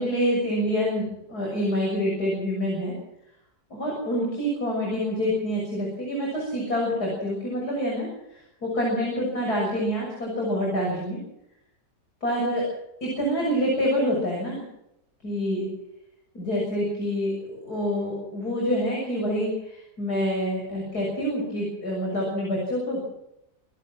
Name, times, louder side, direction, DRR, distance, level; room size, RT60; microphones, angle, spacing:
voice 1, 0.0-2.9 3.7-11.2 12.2-12.6 13.0-14.6 15.2-15.7 16.3-23.0, equal, 80° left, -3 dB, 7.5 m, -27 dB
28.0 x 12.5 x 7.6 m, 0.82 s
omnidirectional pair, 1.7 m